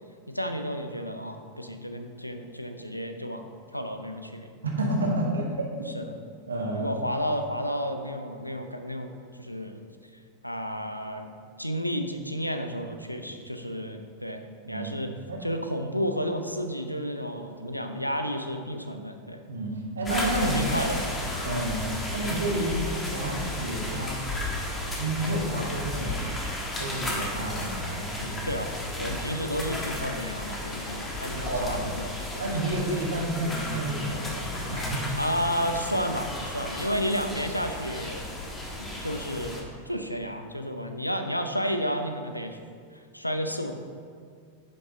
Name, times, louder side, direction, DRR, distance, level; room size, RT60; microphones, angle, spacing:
voice 1, 0.3-4.6 5.9-6.2 6.7-9.1 9.4-9.8 10.4-11.3 11.6-14.4 14.7-15.1 15.4-19.4 20.2-21.2 28.5-32.5 35.2-38.3 38.8-42.6 42.9-43.7, equal, 90° left, 6 dB, 0.6 m, -32 dB
voice 2, 4.6-5.6 6.5-6.8 13.3-13.4 14.6-14.9 15.3-15.4 18.2-18.3 19.5-20.6 21.4-21.8 22.1-24.2 24.9-26.3 26.8-28.5 29.0-29.1 31.3-31.9 32.4-35.1, right 1 dB, 75° right, -1 dB, 1.6 m, -30 dB
sound 1, 20.1-39.6, left 1 dB, 15° left, 1.4 m, -34 dB
10.5 x 5.4 x 3.8 m, 2.1 s
figure-of-eight pair, 90°, 0 cm